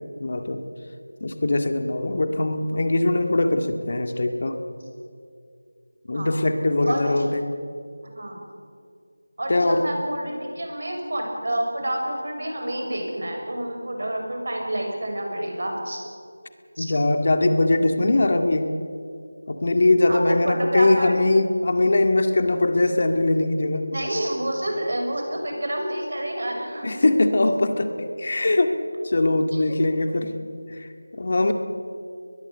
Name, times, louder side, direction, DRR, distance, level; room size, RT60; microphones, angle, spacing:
voice 1, 0.2-0.6 1.2-4.6 6.1-7.4 9.5-9.9 16.8-18.7 19.5-23.9 26.8-28.7 29.0-30.3 30.7-31.5, left 2 dB, 45° left, 7 dB, 2.0 m, -21 dB
voice 2, 6.8-7.3 8.1-8.4 9.4-16.0 16.8-16.9 20.1-21.2 23.9-26.9 29.5-29.6, right 1 dB, 60° right, 2 dB, 6.6 m, -28 dB
22.5 x 21.0 x 8.3 m, 2.3 s
figure-of-eight pair, 170°, 0 cm